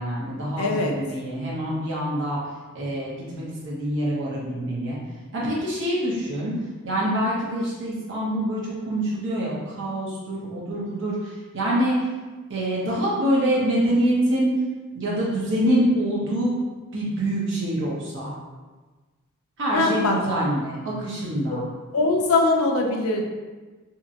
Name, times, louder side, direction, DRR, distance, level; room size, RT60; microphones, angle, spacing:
voice 1, 0.0-2.4 2.7-5.0 5.3-6.6 6.8-12.0 12.5-14.5 15.0-16.6 16.9-18.3 19.6-21.6, right 1 dB, 60° right, -6 dB, 0.7 m, -25 dB
voice 2, 0.6-1.0 19.7-20.2 21.5-21.6 21.9-23.2, left 2 dB, 80° left, 1 dB, 0.5 m, -21 dB
2.8 x 2.7 x 2.5 m, 1.3 s
head